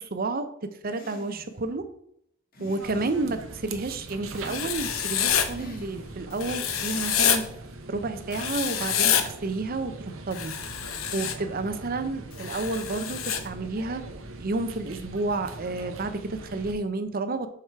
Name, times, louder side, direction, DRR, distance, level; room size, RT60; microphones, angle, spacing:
voice 1, 0.0-1.8 2.6-7.4 7.9-9.9 10.3-10.5 11.1-14.0 14.4-17.5, right 3 dB, 45° right, 9 dB, 0.7 m, -30 dB
sound 1, 0.9-1.6 2.5-3.6 4.3-5.0 5.5-6.3, left 1 dB, 45° left, 1.8 m, -47 dB
sound 2, 2.8-16.7, right 2 dB, 80° right, 0.9 m, -42 dB
Writing, 4.4-5.5 6.4-7.4 8.3-9.2 10.3-11.3 12.4-13.4, left 9 dB, 85° left, 0.8 m, -27 dB
6.6 x 4.9 x 4.6 m, 0.71 s
head